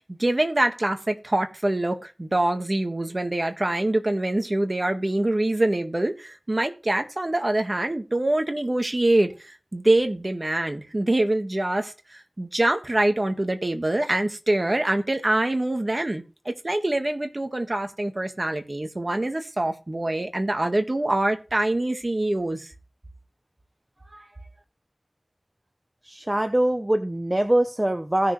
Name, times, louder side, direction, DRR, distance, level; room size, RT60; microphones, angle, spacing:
voice 1, 0.1-22.7 24.1-24.2, right 1 dB, 40° right, 1.7 m, -25 dB
voice 2, 26.1-28.3, right 1 dB, 25° right, 0.9 m, -23 dB
16.5 x 6.4 x 3.3 m
wide cardioid pair, 60°, 0 cm